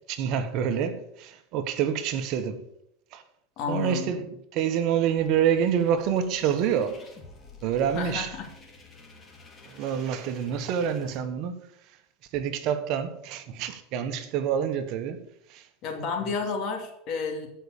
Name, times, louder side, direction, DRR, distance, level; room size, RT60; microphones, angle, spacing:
voice 1, 0.1-2.6 3.1-3.2 3.7-7.0 7.6-8.4 9.6-11.6 12.3-15.7, right 8 dB, 55° right, 1.4 m, -27 dB
voice 2, 3.6-4.1 7.9-8.5 15.8-17.5, left 5 dB, 45° left, 2.9 m, -31 dB
sound 1, 5.2-11.2, left 4 dB, 25° left, 2.6 m, -51 dB
15.5 x 5.7 x 6.8 m
supercardioid pair, 140°, 0 cm